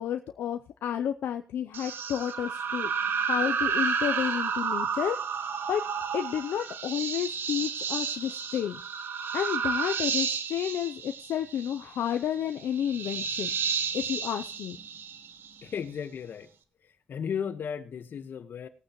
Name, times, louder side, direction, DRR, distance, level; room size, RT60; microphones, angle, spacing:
voice 1, 0.0-5.8 6.1-8.8 9.3-13.5 13.9-14.8, left 10 dB, 90° left, 7 dB, 0.6 m, -31 dB
sound 1, 1.7-15.6, right 6 dB, 70° right, 1.2 m, -31 dB
voice 2, 15.6-16.5 16.8-18.7, left 7 dB, 70° left, 10 dB, 1.3 m, -35 dB
19.0 x 8.9 x 3.1 m, 0.39 s
cardioid pair, 70°, 4 cm